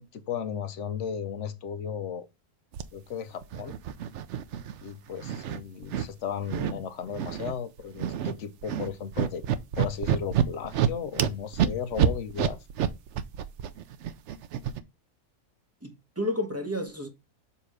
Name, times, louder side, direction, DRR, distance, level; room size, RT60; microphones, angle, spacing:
voice 1, 0.0-2.3 2.9-3.8 4.8-9.4 9.8-12.6, left 7 dB, 60° left, 0.9 m, -35 dB
sound 1, 2.7-2.8 3.4-4.9 5.2-6.1 6.5-6.7 7.1-7.5 7.8-8.3 8.6-14.8, right 9 dB, 65° right, 0.8 m, -28 dB
voice 2, 15.8-17.1, left 1 dB, 15° right, 0.7 m, -31 dB
7.1 x 3.0 x 4.8 m
omnidirectional pair, 1.6 m